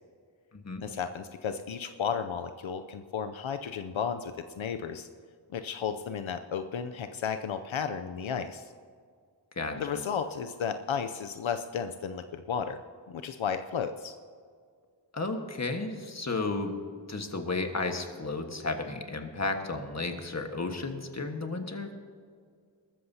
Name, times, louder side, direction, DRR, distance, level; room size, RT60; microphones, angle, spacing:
voice 1, 0.8-5.1 5.5-8.7 9.8-12.8 13.1-14.1, left 7 dB, 80° left, 8 dB, 0.6 m, -33 dB
voice 2, 9.5-10.0 15.1-16.8 17.1-21.9, left 3 dB, 35° left, 5 dB, 1.5 m, -33 dB
21.0 x 13.5 x 2.8 m, 2.1 s
wide cardioid pair, 75°, 47 cm